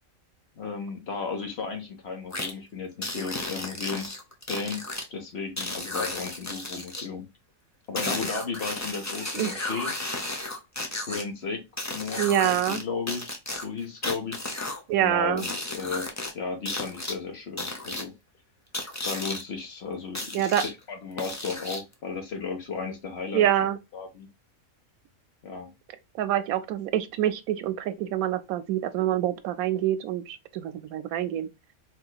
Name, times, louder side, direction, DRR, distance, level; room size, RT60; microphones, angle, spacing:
voice 1, 0.6-4.2 4.5-4.8 5.1-7.3 7.9-9.9 11.1-11.6 11.9-14.7 15.0-16.1 16.3-18.1 19.0-20.5 20.9-24.3 25.4-25.7, left 5 dB, 50° left, 1.0 m, -34 dB
sound 1, 2.3-2.5 3.0-5.0 5.6-7.1 7.9-11.2 11.8-12.8 13.1-14.8 15.4-16.3 16.6-17.1 17.6-18.0 18.7-19.4 20.1-20.7 21.2-21.9, left 2 dB, 25° left, 0.4 m, -33 dB
voice 2, 9.3-9.7 12.2-12.8 14.9-15.4 20.3-20.6 23.3-23.8 26.2-31.5, right 11 dB, 80° right, 1.0 m, -26 dB
4.3 x 2.8 x 2.3 m
omnidirectional pair, 1.5 m